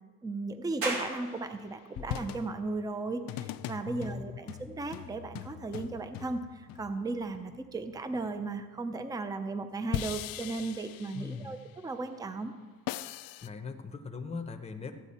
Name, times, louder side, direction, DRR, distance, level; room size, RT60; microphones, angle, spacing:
voice 1, 0.2-12.5, right 3 dB, 10° right, 9 dB, 0.5 m, -36 dB
sound 1, 0.8-13.9, right 2 dB, 80° right, 2.6 m, -46 dB
sound 2, 1.2-1.6 2.0-8.6 9.9-11.6 12.9-13.5, left 13 dB, 80° left, 0.5 m, -41 dB
voice 2, 3.9-4.2 4.6-4.7 11.1-11.6 13.4-14.9, left 5 dB, 20° left, 5 dB, 0.8 m, -40 dB
14.5 x 8.9 x 4.3 m, 1.5 s
cardioid pair, 140°, 34 cm